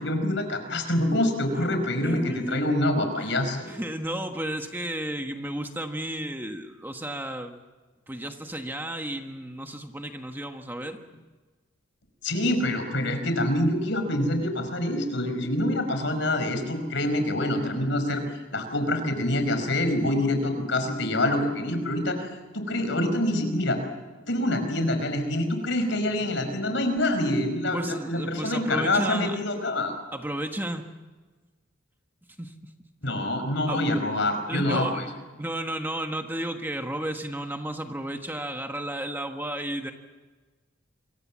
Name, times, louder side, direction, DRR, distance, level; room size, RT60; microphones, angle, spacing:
voice 1, 0.0-3.7 12.2-18.2 18.5-23.8 24.3-29.9 33.0-35.0, left 1 dB, 65° left, 7 dB, 5.3 m, -26 dB
voice 2, 2.0-2.6 3.2-3.3 3.7-7.6 8.1-11.0 27.7-29.4 30.1-30.8 32.4-32.7 33.7-33.8 34.5-35.1 35.4-39.9, right 1 dB, 10° right, 5 dB, 1.3 m, -33 dB
27.5 x 24.0 x 7.4 m, 1.3 s
head